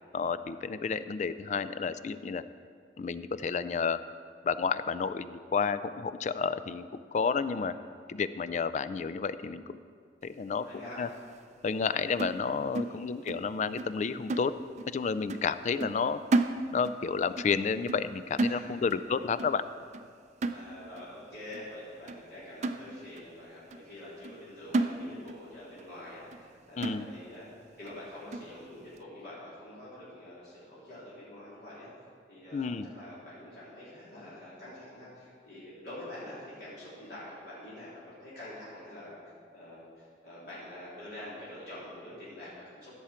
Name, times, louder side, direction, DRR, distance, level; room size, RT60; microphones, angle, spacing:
voice 1, 0.1-2.4 3.0-4.0 4.4-7.7 8.1-9.8 10.2-10.7 11.0-11.1 11.6-14.5 14.9-16.2 16.7-19.6 26.8-27.1 32.5-32.9, left 5 dB, 40° left, 13 dB, 0.3 m, -31 dB
voice 2, 7.2-7.6 10.6-11.2 12.8-13.1 18.5-18.9 20.5-27.5 27.8-31.9 32.3-39.2 39.5-42.9, left 1 dB, 60° left, -10 dB, 3.3 m, -46 dB
sound 1, 12.2-13.5 13.8-14.0 14.3-15.0 15.3-15.5 15.8-17.1 17.4-17.6 17.9-18.1 18.4-19.1 19.4-19.6 19.9-20.1 20.4-21.1 21.5-21.6 22.1-22.2 22.6-23.3 23.7-23.8 24.2-24.4 24.7-25.5 25.8-25.9 26.3-26.4 26.8-27.4 27.9-28.0 28.3-28.5, right 2 dB, 40° right, 0.4 m, -33 dB
15.5 x 7.0 x 4.4 m, 2.2 s
head